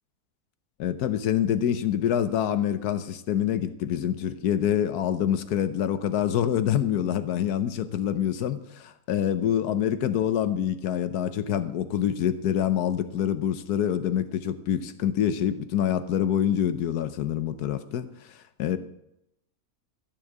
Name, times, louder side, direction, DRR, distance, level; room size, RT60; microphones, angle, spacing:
voice 1, 0.8-18.8, left 10 dB, 85° left, 12 dB, 1.3 m, -26 dB
14.5 x 6.3 x 8.1 m, 0.82 s
omnidirectional pair, 1.6 m